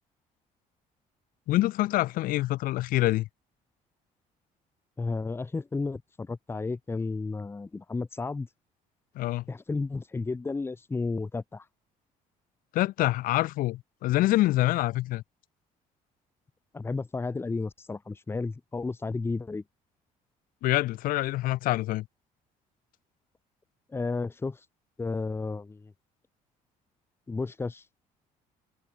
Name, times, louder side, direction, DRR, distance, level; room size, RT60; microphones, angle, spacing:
voice 1, 1.5-3.3 9.2-9.4 12.7-15.2 20.6-22.1, left 16 dB, 75° left, 2.1 m, -26 dB
voice 2, 5.0-8.5 9.5-11.6 16.7-19.6 23.9-24.6 25.0-25.9 27.3-27.8, left 3 dB, 15° left, 1.5 m, -32 dB
cardioid pair, 125°, 14 cm